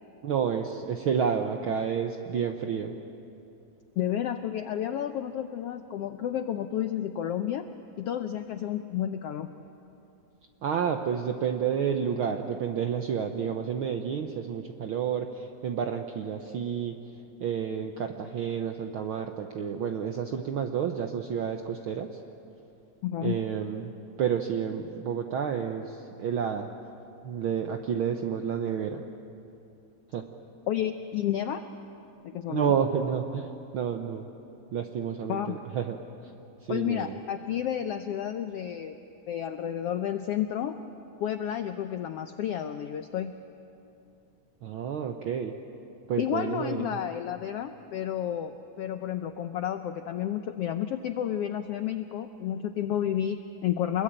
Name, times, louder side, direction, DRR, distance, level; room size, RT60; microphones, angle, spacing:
voice 1, 0.2-2.9 10.6-17.0 17.4-22.1 23.2-23.9 24.2-26.7 27.2-29.0 30.1-30.3 32.5-34.3 34.7-36.3 36.6-37.2 44.6-45.5 46.1-47.0, right 7 dB, 85° right, 5 dB, 1.1 m, -30 dB
voice 2, 4.0-7.7 8.0-9.5 23.0-23.3 30.7-31.6 32.2-32.7 35.3-35.5 36.7-39.0 39.3-40.8 41.2-43.3 46.2-54.0, left 10 dB, 85° left, 8 dB, 1.3 m, -31 dB
27.5 x 21.5 x 8.9 m, 2.8 s
omnidirectional pair, 3.6 m